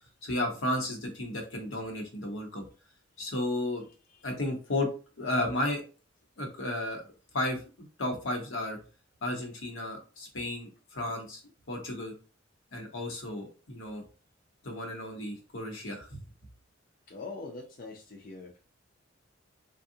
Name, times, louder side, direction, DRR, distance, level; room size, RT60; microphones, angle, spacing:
voice 1, 0.2-2.6 3.2-3.8 4.2-4.9 5.2-5.8 6.4-8.8 9.2-11.4 11.7-12.1 12.7-14.0 14.6-16.2, left 1 dB, 80° left, 2 dB, 1.0 m, -33 dB
voice 2, 17.1-18.6, left 3 dB, 45° left, 0 dB, 0.5 m, -42 dB
3.5 x 2.3 x 2.7 m, 0.35 s
head